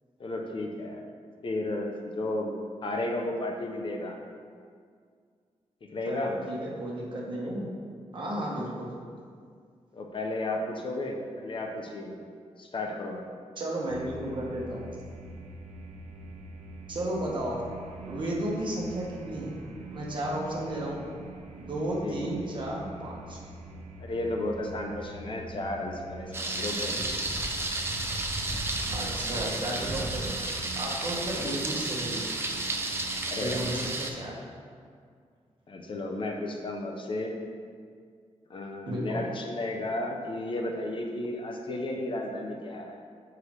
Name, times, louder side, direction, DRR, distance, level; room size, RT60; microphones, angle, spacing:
voice 1, 0.2-1.0 1.4-2.5 2.8-4.2 5.8-6.3 9.9-12.2 12.6-13.2 22.0-22.5 24.0-27.2 31.4-31.6 33.3-33.8 35.7-37.3 38.5-43.0, left 2 dB, 45° left, 2 dB, 0.6 m, -33 dB
voice 2, 6.1-7.7 8.1-8.9 13.6-14.9 16.9-17.6 18.1-19.6 19.9-21.1 21.5-23.4 28.9-30.3 30.8-32.2 33.4-34.5 38.9-39.2, right 1 dB, 40° right, -4 dB, 1.2 m, -33 dB
sound 1, 13.9-33.8, right 3 dB, 65° right, 0.6 m, -44 dB
Thunder, 26.3-34.1, right 2 dB, 20° right, 0.4 m, -32 dB
7.0 x 4.8 x 3.2 m, 2.1 s
wide cardioid pair, 155°, 12 cm